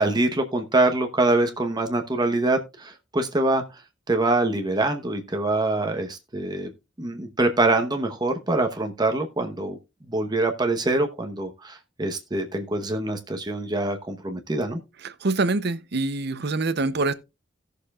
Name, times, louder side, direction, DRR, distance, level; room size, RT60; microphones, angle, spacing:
voice 1, 0.0-3.6 4.1-6.7 7.0-9.8 10.1-14.8, right 2 dB, 20° right, 1.0 m, -24 dB
voice 2, 15.2-17.1, right 3 dB, 60° right, 0.8 m, -24 dB
17.5 x 6.7 x 2.4 m
head